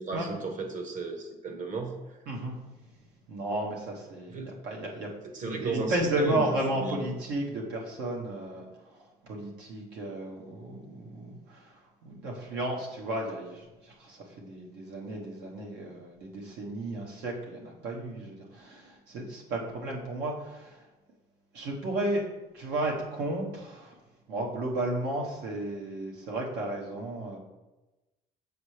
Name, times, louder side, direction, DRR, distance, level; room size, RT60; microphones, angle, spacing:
voice 1, 0.0-2.2 4.3-4.5 5.3-7.0, right 3 dB, 50° right, 5 dB, 1.1 m, -35 dB
voice 2, 3.3-5.1 5.5-20.9 21.5-22.2 22.5-24.0 24.3-27.4, right 1 dB, 85° right, -1 dB, 1.3 m, -33 dB
7.0 x 4.6 x 3.3 m, 1.1 s
cardioid pair, 110°, 17 cm